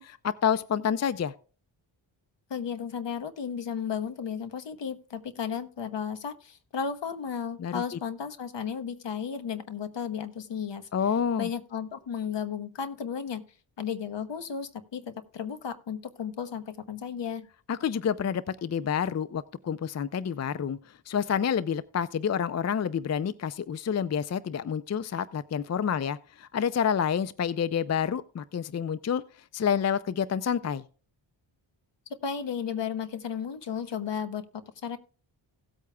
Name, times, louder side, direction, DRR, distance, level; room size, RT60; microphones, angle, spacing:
voice 1, 0.0-1.3 7.6-7.8 10.9-11.5 17.7-20.8 21.1-29.2 29.5-30.8, left 7 dB, 35° left, 0.5 m, -28 dB
voice 2, 2.5-10.9 11.4-13.4 13.8-17.5 32.2-35.0, left 7 dB, 65° left, 1.2 m, -34 dB
17.0 x 8.3 x 2.3 m
cardioid pair, 65°, 47 cm